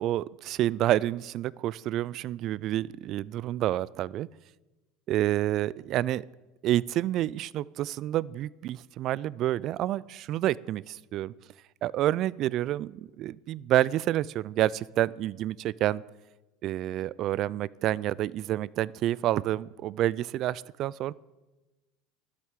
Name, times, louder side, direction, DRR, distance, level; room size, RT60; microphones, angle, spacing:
voice 1, 0.0-4.3 5.1-6.2 6.6-11.3 11.8-16.0 16.6-21.1, right 13 dB, 50° right, 23 dB, 0.3 m, -28 dB
11.5 x 7.6 x 8.1 m, 1.1 s
supercardioid pair, 110°, 0 cm